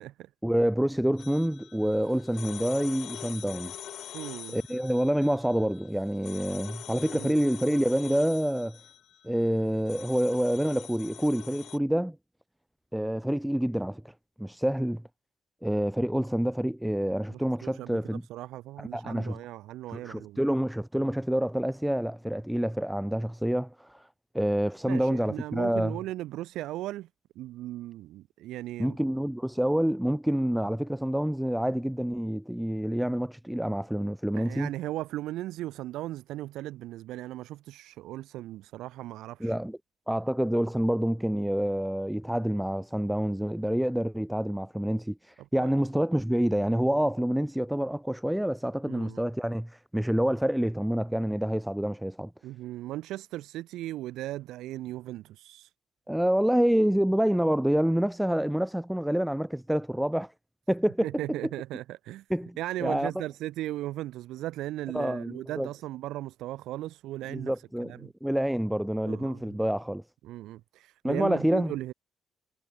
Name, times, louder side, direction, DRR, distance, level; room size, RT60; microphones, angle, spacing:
voice 1, 0.4-3.8 4.5-8.8 9.2-12.2 12.9-14.1 14.4-15.0 15.6-18.2 18.8-19.4 19.9-24.1 24.3-26.0 28.8-34.7 39.4-39.8 40.1-52.3 56.1-60.3 60.7-61.1 62.3-63.1 64.9-65.7 67.3-70.0 71.0-71.7, equal, 5° right, 0.4 m, -27 dB
sound 1, 1.2-11.8, left 10 dB, 70° left, 7.1 m, -45 dB
voice 2, 4.1-4.6 7.1-7.4 17.3-18.0 18.3-20.4 24.9-27.1 27.4-29.0 34.3-39.5 45.6-45.7 48.9-49.3 52.4-55.7 61.0-62.2 62.6-67.5 67.8-68.1 69.0-69.6 70.2-71.9, right 15 dB, 90° right, 0.9 m, -37 dB
cardioid pair, 90°, 0 cm